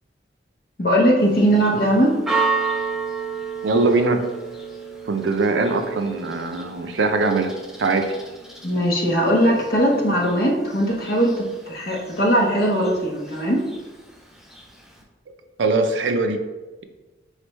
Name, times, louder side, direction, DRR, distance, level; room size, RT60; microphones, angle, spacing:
voice 1, 0.8-2.2 8.6-13.7, equal, 55° left, -1 dB, 0.8 m, -19 dB
Church bell, 1.2-15.0, right 4 dB, 5° right, 0.4 m, -33 dB
voice 2, 3.6-4.2 5.0-8.1 15.6-16.4, right 3 dB, 80° right, 6 dB, 0.5 m, -21 dB
4.2 x 3.2 x 3.0 m, 1.2 s
head